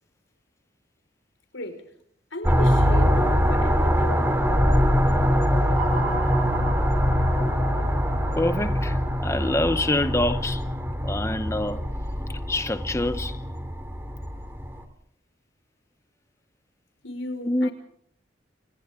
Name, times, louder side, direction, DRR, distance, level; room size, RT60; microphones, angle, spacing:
voice 1, 1.5-1.9 2.3-4.3 17.0-17.7, left 1 dB, 85° left, 5.4 m, -36 dB
sound 1, 2.4-14.8, equal, 10° right, 3.0 m, -23 dB
sound 2, 5.7-10.0, right 6 dB, 85° right, 3.2 m, -38 dB
voice 2, 8.4-10.6 11.0-11.8 12.5-13.4 17.4-17.7, left 1 dB, 15° left, 0.8 m, -26 dB
29.5 x 28.0 x 3.8 m
head